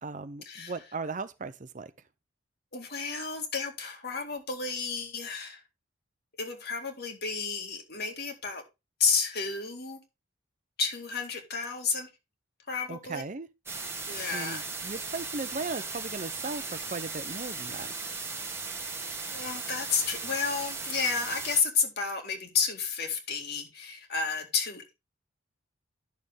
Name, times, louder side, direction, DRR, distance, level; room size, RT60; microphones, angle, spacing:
voice 1, 0.0-1.9 12.9-13.5 14.3-18.1, right 3 dB, 40° right, 0.6 m, -37 dB
voice 2, 2.7-5.6 6.4-8.6 9.0-10.0 10.8-12.1 12.7-13.2 14.1-14.6 19.3-24.9, left 5 dB, 50° left, 2.2 m, -31 dB
sound 1, 13.7-21.6, right 4 dB, 10° right, 1.4 m, -37 dB
10.5 x 6.6 x 3.5 m
head